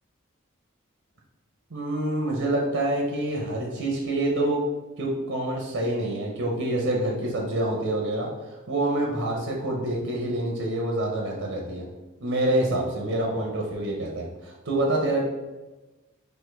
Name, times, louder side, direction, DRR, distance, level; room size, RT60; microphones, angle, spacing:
voice 1, 1.7-4.6 5.0-11.8 12.2-15.2, right 1 dB, 80° right, -1 dB, 0.8 m, -27 dB
4.2 x 2.7 x 4.6 m, 1.1 s
head